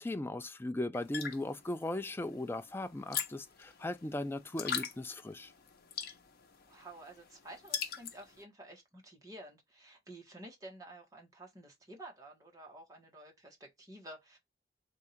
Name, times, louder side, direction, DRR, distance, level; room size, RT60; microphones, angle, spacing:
voice 1, 0.0-5.5, left 1 dB, 15° left, 0.3 m, -38 dB
sound 1, 0.9-8.4, left 8 dB, 55° left, 0.8 m, -42 dB
voice 2, 6.7-14.4, right 1 dB, 20° right, 1.4 m, -51 dB
3.6 x 2.6 x 4.3 m
head